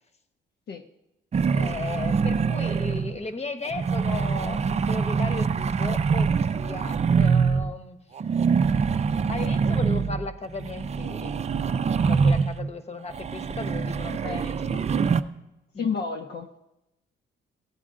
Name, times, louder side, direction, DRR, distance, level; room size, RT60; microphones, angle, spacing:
sound 1, 1.3-3.2 3.7-7.7 8.2-12.7 13.1-15.2, right 5 dB, 35° right, 0.5 m, -24 dB
voice 1, 1.5-8.0 9.3-11.4 12.0-15.2 15.7-15.9, left 3 dB, 35° left, 10 dB, 1.1 m, -36 dB
voice 2, 14.2-14.9 15.8-16.5, left 5 dB, 55° left, 4 dB, 0.8 m, -31 dB
16.0 x 9.1 x 3.7 m, 0.94 s
cardioid pair, 90°, 20 cm